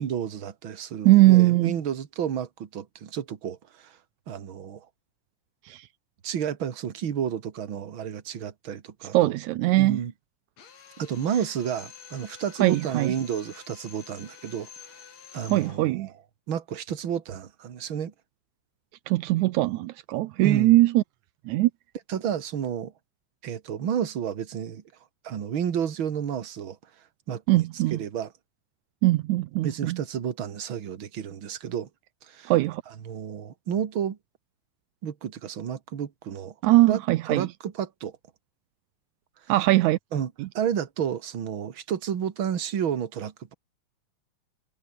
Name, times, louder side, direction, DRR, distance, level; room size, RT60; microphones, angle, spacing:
voice 1, 0.0-4.0 4.3-4.9 6.2-9.4 9.7-10.1 11.0-14.7 15.3-16.1 16.5-18.1 20.4-20.8 22.1-22.9 23.4-24.8 25.2-26.8 27.3-28.3 29.6-31.9 32.3-32.5 32.9-34.2 35.0-36.5 36.9-37.0 37.3-38.1 40.1-43.5, right 8 dB, 45° right, 2.3 m, -31 dB
voice 2, 1.1-1.8 5.7-5.8 9.1-10.0 12.6-13.1 15.5-16.1 19.1-21.0 21.5-21.7 27.5-28.0 29.0-30.0 32.5-32.8 36.6-37.5 39.5-40.0 40.4-40.5, right 17 dB, 80° right, 2.0 m, -21 dB
Drill, 10.6-15.9, left 7 dB, 60° left, 3.8 m, -48 dB
omnidirectional pair, 3.5 m